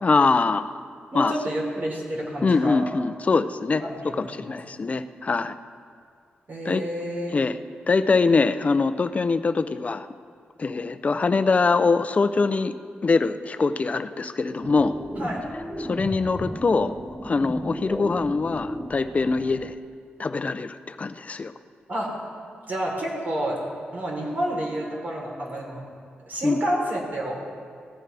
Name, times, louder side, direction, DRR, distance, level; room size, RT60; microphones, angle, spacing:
voice 1, 0.0-0.7 1.1-1.3 2.4-3.8 4.2-5.5 6.6-6.8 7.3-7.5 7.9-10.1 10.6-12.7 13.0-14.9 15.8-16.9 17.2-19.7 20.2-21.5 26.4-26.6, left 4 dB, 40° left, 11 dB, 0.6 m, -23 dB
voice 2, 1.1-2.8 3.8-4.6 6.5-7.3 15.2-15.4 21.9-22.1 22.7-23.6 23.9-25.8 26.3-27.3, right 1 dB, 55° right, -2 dB, 3.7 m, -29 dB
sound 1, 14.6-19.7, equal, 10° right, 0.9 m, -35 dB
18.0 x 14.5 x 3.4 m, 2.2 s
cardioid pair, 90°, 4 cm